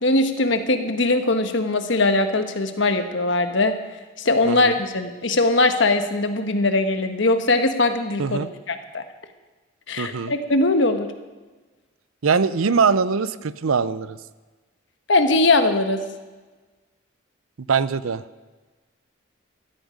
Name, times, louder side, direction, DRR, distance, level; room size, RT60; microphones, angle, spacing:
voice 1, 0.0-3.7 4.2-9.0 9.9-11.1 15.1-16.0, left 2 dB, 60° left, 8 dB, 1.2 m, -21 dB
voice 2, 10.0-10.3 12.2-14.2 17.7-18.2, right 5 dB, 80° right, 16 dB, 0.6 m, -22 dB
14.5 x 13.5 x 5.2 m, 1.3 s
head